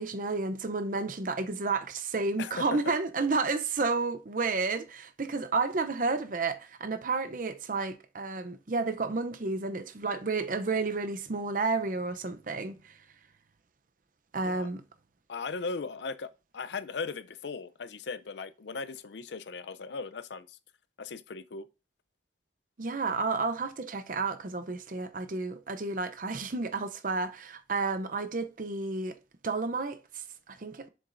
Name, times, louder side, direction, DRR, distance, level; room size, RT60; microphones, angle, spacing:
voice 1, 0.0-13.0 14.3-14.8 22.8-29.2 29.4-30.9, right 3 dB, 50° right, 0.6 m, -31 dB
voice 2, 2.4-2.9 14.4-14.7 15.3-20.6 21.0-21.7, left 4 dB, 75° left, 0.5 m, -38 dB
7.1 x 7.0 x 2.6 m
head